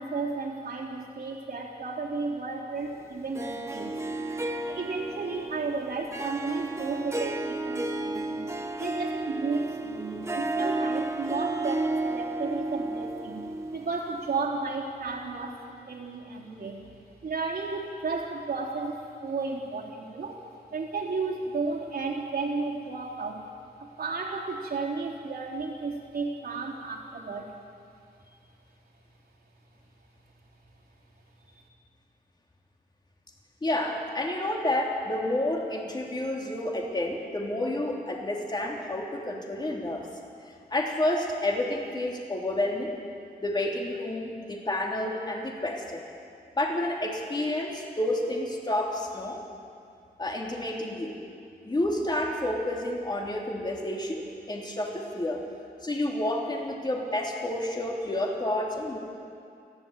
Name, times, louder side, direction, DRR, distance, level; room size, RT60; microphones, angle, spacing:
voice 1, 0.0-4.0 4.7-8.5 8.8-16.9 17.2-23.5 23.8-27.6, right 4 dB, 65° right, -1 dB, 3.5 m, -33 dB
Harp, 3.3-14.5, right 2 dB, 15° right, 1.4 m, -32 dB
voice 2, 33.6-40.1 40.7-42.9 43.4-46.1 46.6-49.4 50.2-51.2 51.6-55.4 55.8-59.0, left 1 dB, 25° left, -1 dB, 3.4 m, -30 dB
29.5 x 11.5 x 8.9 m, 2.4 s
wide cardioid pair, 115°, 17 cm